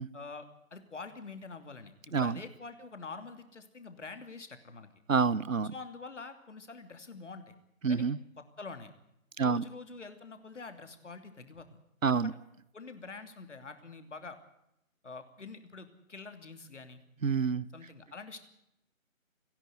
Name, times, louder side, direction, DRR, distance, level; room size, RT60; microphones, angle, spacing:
voice 1, 0.1-4.9 5.7-7.5 7.9-8.1 8.6-8.9 9.4-11.8 12.1-12.3 12.7-14.4 15.0-17.0 17.7-18.5, left 4 dB, 60° left, 8 dB, 2.9 m, -46 dB
voice 2, 5.1-5.7 7.8-8.2 9.4-9.6 12.0-12.3 17.2-17.6, right 5 dB, 70° right, 21 dB, 1.0 m, -27 dB
29.5 x 11.0 x 9.4 m, 0.82 s
figure-of-eight pair, 160°, 41 cm